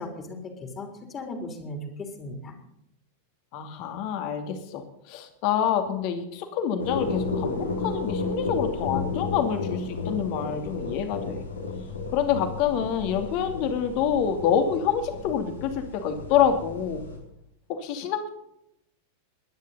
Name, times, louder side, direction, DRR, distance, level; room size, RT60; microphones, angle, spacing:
voice 1, 0.0-2.5, left 2 dB, 25° left, 4 dB, 3.5 m, -37 dB
voice 2, 3.5-11.4 12.1-17.0 17.7-18.3, left 8 dB, 45° left, 7 dB, 2.6 m, -27 dB
sound 1, 6.8-17.2, left 3 dB, 75° left, 3.7 m, -33 dB
21.5 x 10.5 x 4.1 m, 0.79 s
figure-of-eight pair, 90°, 0 cm